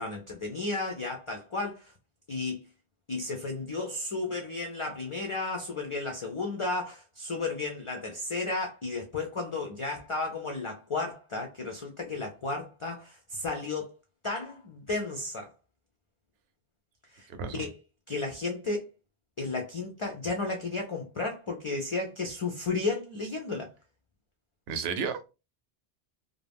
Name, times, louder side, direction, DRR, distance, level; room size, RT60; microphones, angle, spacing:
voice 1, 0.0-1.9 2.3-2.6 3.1-13.9 14.2-15.5 17.1-17.3 17.5-17.7 18.1-18.9 19.4-23.7, left 3 dB, 55° left, 0.3 m, -33 dB
voice 2, 17.3-17.6 24.7-25.3, right 5 dB, 75° right, 0.8 m, -32 dB
2.4 x 2.1 x 3.3 m
omnidirectional pair, 1.1 m